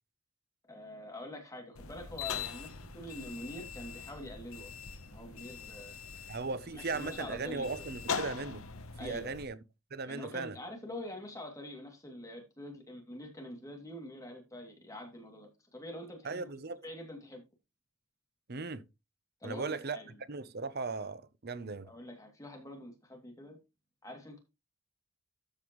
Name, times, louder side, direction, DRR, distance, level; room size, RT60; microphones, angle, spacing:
voice 1, 0.7-4.8 5.1-5.9 6.7-7.9 9.0-9.4 10.1-16.5 16.8-17.4 19.4-20.2 21.8-23.6 24.0-24.4, left 1 dB, 15° left, 2.6 m, -45 dB
sound 1, 1.8-9.5, left 6 dB, 70° left, 1.0 m, -42 dB
voice 2, 6.3-8.6 9.0-9.6 9.9-10.6 16.2-16.8 18.5-18.8 19.4-20.0 20.3-21.9, right 4 dB, 45° right, 0.8 m, -37 dB
13.5 x 5.5 x 3.1 m
head